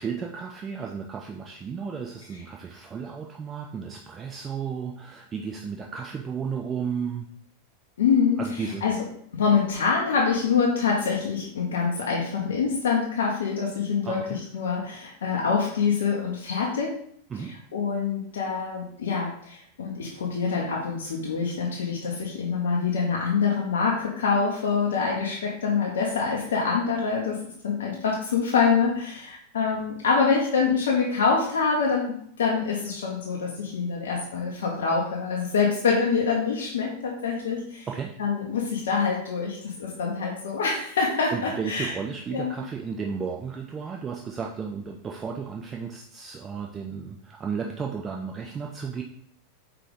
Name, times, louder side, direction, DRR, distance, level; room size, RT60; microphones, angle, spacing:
voice 1, 0.0-7.3 8.4-8.8 14.0-14.4 17.3-17.5 37.9-38.1 41.3-49.0, right 6 dB, 20° right, 1 dB, 0.4 m, -33 dB
voice 2, 8.0-9.1 9.3-16.9 17.4-37.9 38.2-42.0 42.3-42.6, left 5 dB, 65° left, -2 dB, 0.7 m, -25 dB
5.0 x 2.9 x 3.5 m, 0.65 s
figure-of-eight pair, 90°, 0 cm